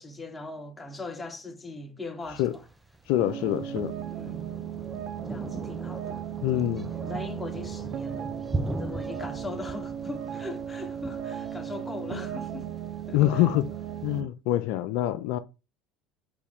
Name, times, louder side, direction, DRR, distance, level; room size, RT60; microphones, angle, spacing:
voice 1, 0.0-2.7 3.4-3.8 4.1-4.5 5.3-6.2 7.0-8.3 8.7-12.7 13.1-13.4, left 3 dB, 20° left, 0.9 m, -40 dB
Thunder, 2.2-14.2, right 2 dB, 10° right, 0.5 m, -40 dB
voice 2, 3.1-3.9 6.4-6.9 13.1-13.7 14.0-15.4, left 14 dB, 75° left, 0.3 m, -25 dB
sound 1, 3.2-14.3, right 9 dB, 65° right, 0.4 m, -36 dB
3.9 x 3.1 x 3.5 m
supercardioid pair, 85°, 0 cm